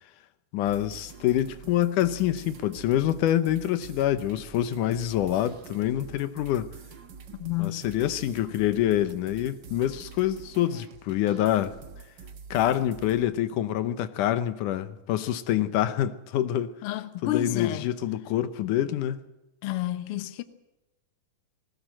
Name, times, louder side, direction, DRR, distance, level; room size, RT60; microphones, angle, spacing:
voice 1, 0.5-6.7 7.6-11.7 12.5-16.7 17.2-19.2, left 12 dB, 80° left, 2.4 m, -26 dB
sound 1, 0.6-13.3, right 5 dB, 50° right, 1.4 m, -46 dB
voice 2, 7.4-7.9 16.8-17.9 19.6-20.4, left 14 dB, 65° left, 1.5 m, -30 dB
20.0 x 18.0 x 7.6 m
omnidirectional pair, 3.6 m